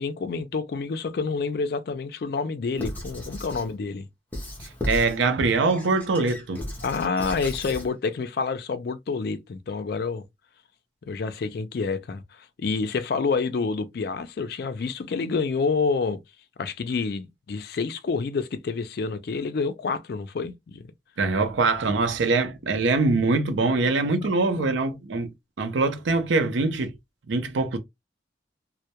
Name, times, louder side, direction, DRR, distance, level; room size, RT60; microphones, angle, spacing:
voice 1, 0.0-4.1 6.8-10.2 11.1-16.2 16.6-20.9 23.6-23.8 24.0-24.1 24.5-24.8, left 4 dB, 55° left, 0.4 m, -28 dB
Squeak / Writing, 2.8-3.7 4.3-5.2 5.7-7.9, left 1 dB, 10° left, 0.6 m, -35 dB
voice 2, 4.9-6.6 21.2-25.3 25.6-26.9 27.3-27.8, right 3 dB, 85° right, 0.5 m, -23 dB
2.2 x 2.1 x 2.7 m
head